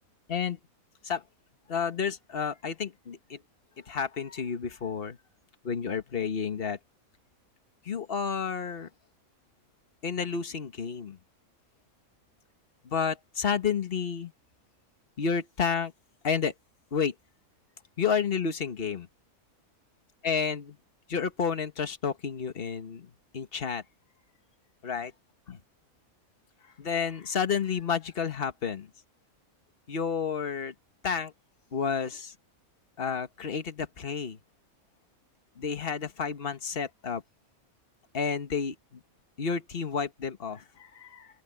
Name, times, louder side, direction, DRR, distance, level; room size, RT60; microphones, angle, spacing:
voice 1, 1.7-3.4 3.9-5.2 5.6-6.8 7.8-8.9 10.0-11.2 12.8-14.3 15.2-15.9 16.2-16.5 16.9-17.1 18.0-19.1 20.2-20.8 21.1-23.1 23.3-23.8 24.8-25.1 25.5-25.6 26.8-28.9 29.9-30.7 31.0-31.3 31.7-32.3 33.0-34.4 35.6-37.2 38.1-38.7 39.4-41.3, left 6 dB, 40° left, 1.5 m, -30 dB
open air
omnidirectional pair, 1.5 m